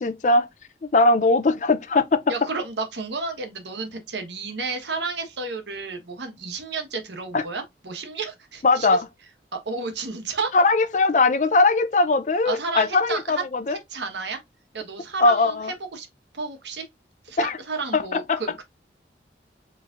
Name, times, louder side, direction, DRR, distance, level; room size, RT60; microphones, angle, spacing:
voice 1, 0.0-0.5 0.9-2.2 7.3-7.4 8.6-9.1 10.5-13.8 15.2-15.7 17.4-17.6 17.9-18.4, left 3 dB, 45° left, 0.4 m, -20 dB
voice 2, 2.3-9.0 9.5-10.5 12.4-13.4 13.7-14.4 14.7-15.6 15.9-16.1 16.3-16.8 17.2-18.6, right 4 dB, 80° right, 1.1 m, -31 dB
4.9 x 3.1 x 2.4 m
head